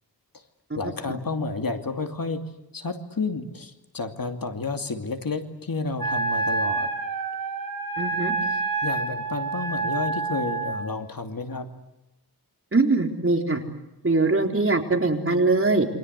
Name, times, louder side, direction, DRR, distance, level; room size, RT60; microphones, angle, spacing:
voice 1, 0.8-2.4 2.7-6.9 8.4-11.7, left 3 dB, 60° left, 5 dB, 2.7 m, -31 dB
Wind instrument woodwind instrument, 6.0-10.9, right 3 dB, 60° right, 7.9 m, -28 dB
voice 2, 8.0-8.3 12.7-13.6 14.0-15.9, right 3 dB, 35° right, 3 dB, 4.0 m, -22 dB
28.5 x 25.5 x 8.2 m, 0.93 s
wide cardioid pair, 90°, 40 cm